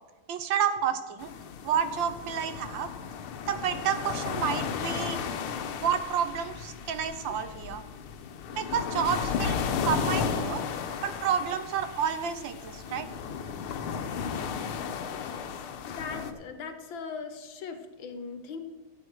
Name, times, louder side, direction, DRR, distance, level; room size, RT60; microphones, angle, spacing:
voice 1, 0.3-1.3 1.6-2.9 3.5-5.2 5.8-7.8 8.5-9.6 9.8-10.6 11.0-13.1, right 8 dB, 70° right, 10 dB, 1.4 m, -30 dB
sound 1, 1.2-16.3, left 6 dB, 85° left, 1.8 m, -34 dB
voice 2, 15.3-15.7 16.0-18.6, left 5 dB, 65° left, 7 dB, 1.7 m, -39 dB
14.0 x 8.4 x 4.7 m, 1.3 s
omnidirectional pair, 2.3 m